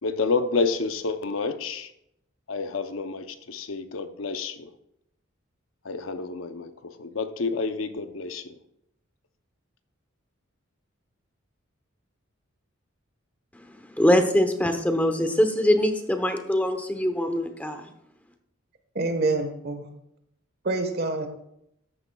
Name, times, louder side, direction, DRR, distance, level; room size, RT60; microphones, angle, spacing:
voice 1, 0.0-1.9 2.5-4.7 5.8-8.6, left 4 dB, 75° left, 9 dB, 0.7 m, -29 dB
voice 2, 14.0-17.9, left 1 dB, 10° left, 7 dB, 0.9 m, -23 dB
voice 3, 18.9-19.9 20.6-21.3, right 3 dB, 50° right, 7 dB, 1.3 m, -26 dB
13.0 x 9.6 x 2.3 m, 0.78 s
head